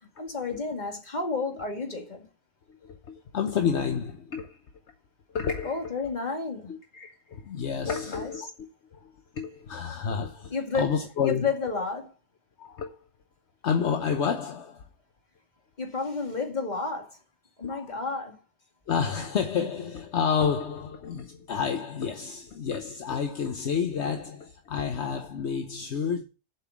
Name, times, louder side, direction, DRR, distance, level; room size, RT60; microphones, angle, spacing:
voice 1, 0.0-2.3 5.6-6.7 7.8-8.5 10.5-12.1 15.8-17.2 17.6-18.4, left 4 dB, 35° left, 2.2 m, -31 dB
voice 2, 2.7-4.6 5.3-5.8 6.7-11.5 12.6-13.0 13.6-14.9 17.6-17.9 18.9-26.2, left 6 dB, 65° left, 1.1 m, -30 dB
7.6 x 5.5 x 7.2 m
omnidirectional pair, 1.3 m